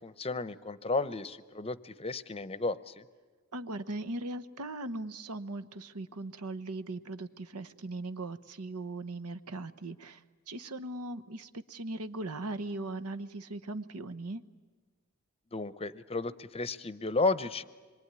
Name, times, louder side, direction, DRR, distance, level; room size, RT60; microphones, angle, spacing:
voice 1, 0.0-3.0 15.5-17.6, left 3 dB, 25° left, 15 dB, 0.7 m, -33 dB
voice 2, 3.5-14.4, right 2 dB, 90° right, 12 dB, 1.0 m, -39 dB
26.0 x 22.5 x 9.7 m, 1.4 s
head